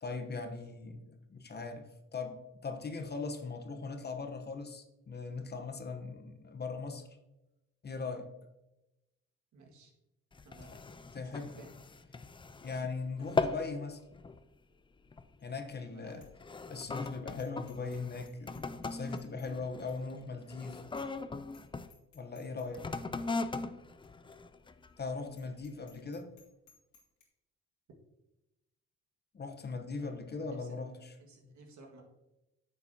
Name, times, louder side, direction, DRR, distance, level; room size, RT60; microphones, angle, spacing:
voice 1, 0.0-7.1 7.8-8.3 10.7-10.8 11.1-11.5 12.6-14.0 15.4-16.2 16.7-20.8 22.1-22.9 25.0-26.4 29.3-31.1 31.4-31.6, left 4 dB, 35° left, 6 dB, 0.9 m, -40 dB
voice 2, 9.5-9.9 10.4-10.8 11.2-11.7 15.9-16.3 30.0-30.1 30.4-30.8 31.2-32.0, right 3 dB, 70° right, 1 dB, 1.9 m, -55 dB
sound 1, 10.3-12.9 13.2-13.7 14.1-14.4 15.1-15.4 16.1-21.9 22.7-25.0 25.6-25.7, left 3 dB, 15° left, 0.4 m, -39 dB
Bicycle bell, 15.4-15.7 16.1-16.3 16.7-16.8 17.4-18.0 18.3-19.5 19.9-20.0 20.4-20.5 21.0-21.2 21.5-21.6 21.9-22.7 23.2-23.3 24.0-24.1 24.3-24.4 24.8-24.9 25.3-27.3, left 5 dB, 70° left, 2.3 m, -64 dB
9.6 x 6.9 x 2.8 m, 0.96 s
cardioid pair, 90°, 30 cm